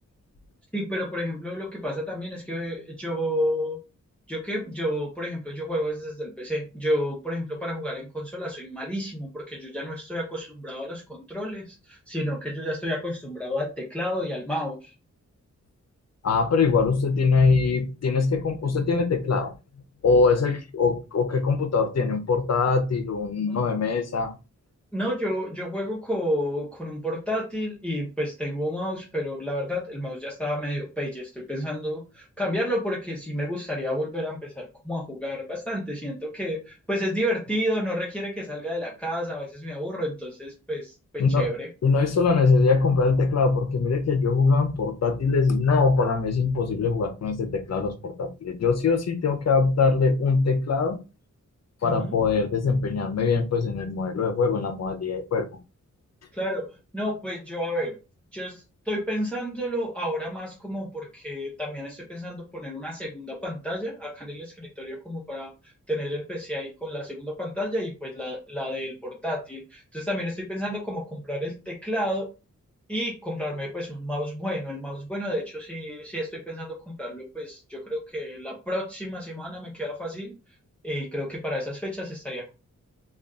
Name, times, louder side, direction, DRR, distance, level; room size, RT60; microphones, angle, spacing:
voice 1, 0.7-3.8 4.3-14.9 23.5-23.6 24.9-41.7 51.8-52.2 56.3-56.7 56.9-58.0 58.3-65.5 65.9-72.3 72.9-80.3 80.8-82.5, equal, 5° left, 0.7 m, -31 dB
voice 2, 16.2-19.5 20.0-24.4 41.2-41.5 41.8-51.0 51.8-55.5, left 4 dB, 60° left, 0.6 m, -22 dB
2.5 x 2.4 x 3.4 m
wide cardioid pair, 125°, 30 cm